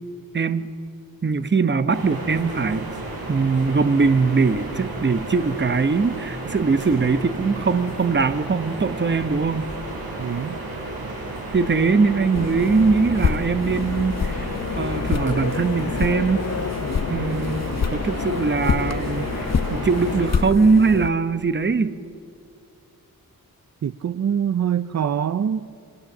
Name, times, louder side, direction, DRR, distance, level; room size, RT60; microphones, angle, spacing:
voice 1, 0.3-0.7 1.2-2.9 3.3-9.7 11.5-14.5 14.8-16.4 17.1-17.6 17.9-22.0, right 4 dB, 30° right, 11 dB, 0.9 m, -21 dB
sound 1, 1.9-20.3, right 2 dB, 85° right, 6.8 m, -33 dB
voice 2, 10.2-10.6 23.8-25.7, right 8 dB, 50° right, 13 dB, 0.6 m, -24 dB
sound 2, 12.3-21.1, left 6 dB, 45° left, 0.8 m, -26 dB
29.0 x 24.0 x 7.3 m, 2.5 s
wide cardioid pair, 160°, 36 cm